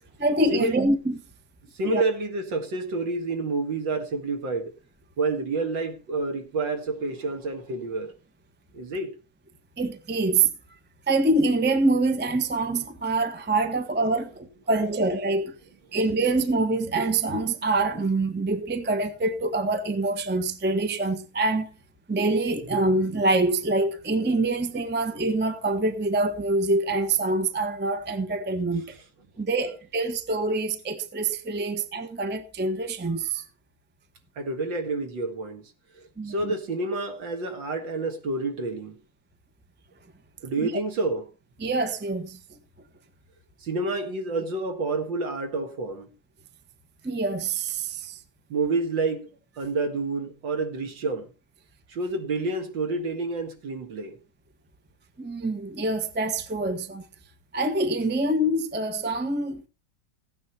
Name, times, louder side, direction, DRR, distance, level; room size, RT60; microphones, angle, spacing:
voice 1, 0.2-1.2 1.8-2.0 9.8-10.5 11.1-15.5 15.9-21.7 22.1-28.9 29.4-33.4 36.2-36.5 40.6-40.7 41.6-42.4 47.0-48.2 55.2-57.0 57.5-59.7, right 2 dB, 10° right, 0.6 m, -25 dB
voice 2, 1.7-4.7 5.2-8.1 8.7-9.1 13.7-13.8 14.5-15.0 15.7-15.8 28.7-29.0 34.4-35.7 36.0-39.0 40.4-41.3 43.6-46.1 48.5-49.3 49.6-51.3 51.9-54.2, right 3 dB, 60° right, 2.5 m, -29 dB
16.0 x 9.4 x 4.2 m
omnidirectional pair, 2.3 m